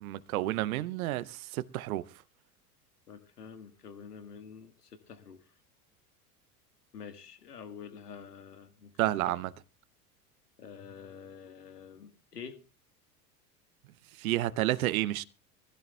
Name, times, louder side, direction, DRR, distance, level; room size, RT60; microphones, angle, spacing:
voice 1, 0.0-2.0 9.0-9.5 14.2-15.2, right 15 dB, 65° right, 0.8 m, -30 dB
voice 2, 3.1-5.4 6.9-9.3 10.6-12.6, left 6 dB, 80° left, 1.6 m, -47 dB
23.0 x 15.5 x 2.2 m
figure-of-eight pair, 80°, 47 cm